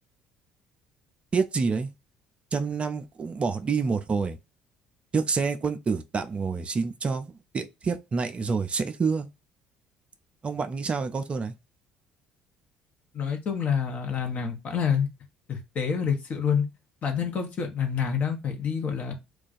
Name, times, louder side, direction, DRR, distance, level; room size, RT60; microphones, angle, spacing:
voice 1, 1.3-1.9 2.5-4.4 5.1-9.3 10.4-11.5, right 5 dB, 35° right, 0.4 m, -28 dB
voice 2, 13.1-15.1 15.5-16.7 17.0-19.1, left 7 dB, 45° left, 0.9 m, -27 dB
2.4 x 2.3 x 4.0 m
figure-of-eight pair, 55°, 4 cm